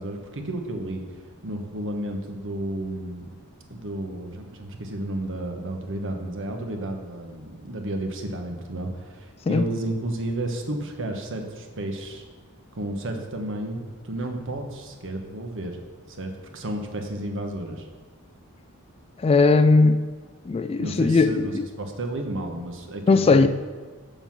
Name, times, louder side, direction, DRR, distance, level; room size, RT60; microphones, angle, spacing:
voice 1, 0.0-3.3 3.7-12.2 12.7-15.8 16.1-17.9 20.8-21.5 21.8-23.5, right 1 dB, 60° right, 4 dB, 1.2 m, -32 dB
voice 2, 19.2-20.0 20.5-21.3 23.1-23.5, left 3 dB, 25° left, 10 dB, 0.3 m, -18 dB
7.1 x 5.6 x 7.4 m, 1.4 s
head